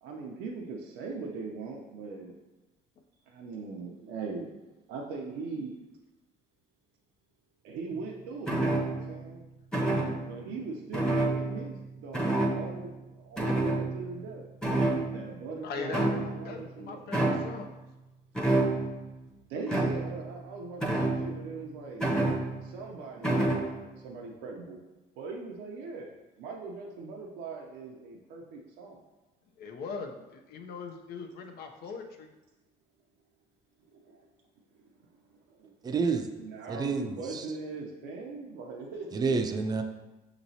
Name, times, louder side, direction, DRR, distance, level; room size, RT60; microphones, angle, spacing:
voice 1, 0.0-2.3 3.3-4.5 4.9-5.7 7.6-9.4 10.2-14.4 15.1-17.5 19.5-22.2 22.6-24.8 25.2-26.1 26.4-29.0 33.9-34.3 35.5-35.7 36.4-39.2, right 4 dB, 90° right, 0 dB, 0.6 m, -40 dB
sound 1, 8.5-9.2 9.7-10.3 10.9-11.8 12.1-12.8 13.4-14.3 14.6-15.4 15.9-16.5 17.1-17.6 18.3-19.0 19.7-20.2 20.8-21.5 22.0-22.7 23.2-23.7, right 2 dB, 5° left, 0.8 m, -28 dB
voice 2, 15.6-17.8 29.6-32.3, left 4 dB, 70° left, 4 dB, 0.6 m, -40 dB
voice 3, 35.8-36.3 36.7-37.4 39.1-39.8, right 4 dB, 25° right, 6 dB, 0.4 m, -29 dB
6.4 x 3.0 x 2.7 m, 1.1 s
cardioid pair, 110°, 17 cm